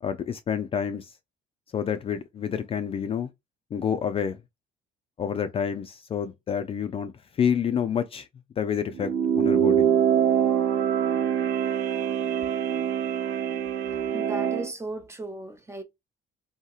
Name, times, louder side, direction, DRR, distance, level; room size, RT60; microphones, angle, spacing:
voice 1, 0.0-1.1 1.7-3.3 3.7-4.4 5.2-8.3 8.6-9.9, left 8 dB, 35° left, 0.4 m, -28 dB
sound 1, 8.9-14.7, right 8 dB, 85° right, 0.6 m, -24 dB
voice 2, 14.1-15.8, right 2 dB, 15° right, 0.7 m, -36 dB
2.8 x 2.7 x 2.3 m
cardioid pair, 110°, 17 cm